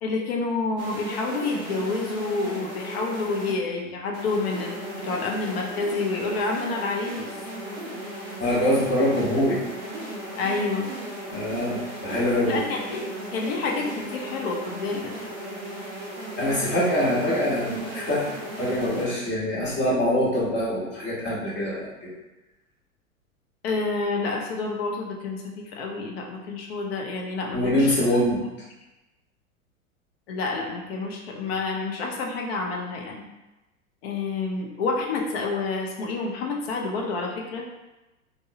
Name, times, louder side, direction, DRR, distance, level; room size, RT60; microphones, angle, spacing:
voice 1, 0.0-7.3 10.4-10.9 12.5-13.1 13.3-15.1 23.6-28.0 30.3-33.2 34.0-37.6, left 3 dB, 45° left, 1 dB, 0.6 m, -28 dB
sound 1, 0.8-3.5 4.1-19.0, right 1 dB, 15° right, 0.3 m, -36 dB
voice 2, 8.4-9.6 11.3-12.6 16.4-18.3 18.6-22.1 27.5-28.5, left 1 dB, 25° left, -6 dB, 1.0 m, -24 dB
3.4 x 2.0 x 2.7 m, 1.0 s
figure-of-eight pair, 100°, 43 cm